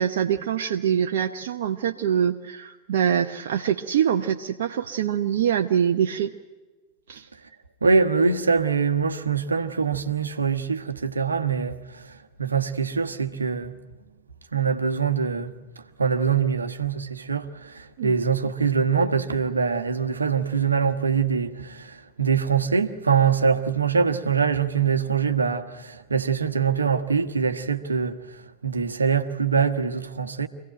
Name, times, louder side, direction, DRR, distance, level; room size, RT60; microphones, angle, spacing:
voice 1, 0.0-6.3 7.1-7.3 18.0-18.1, right 9 dB, 60° right, 0.9 m, -24 dB
voice 2, 7.8-13.7 14.5-15.5 16.0-30.5, right 6 dB, 75° right, 1.3 m, -24 dB
25.5 x 17.0 x 8.9 m
figure-of-eight pair, 90°, 0 cm